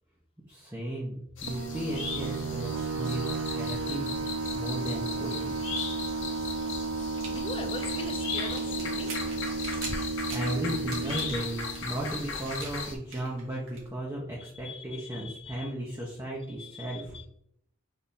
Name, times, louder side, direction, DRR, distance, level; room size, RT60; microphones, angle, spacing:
voice 1, 0.5-3.2 3.5-4.1 4.5-5.5 10.3-17.2, right 1 dB, 15° right, -5 dB, 0.7 m, -35 dB
sound 1, 1.4-13.0, left 4 dB, 60° left, 0.8 m, -37 dB
sound 2, 1.5-12.8, right 4 dB, 85° right, 0.3 m, -34 dB
voice 2, 6.5-6.9 7.3-9.3 14.4-15.7 16.6-17.3, left 3 dB, 25° left, 6 dB, 0.5 m, -42 dB
sound 3, 7.1-13.9, right 2 dB, 70° right, 1.4 m, -43 dB
3.6 x 3.3 x 4.1 m, 0.72 s
head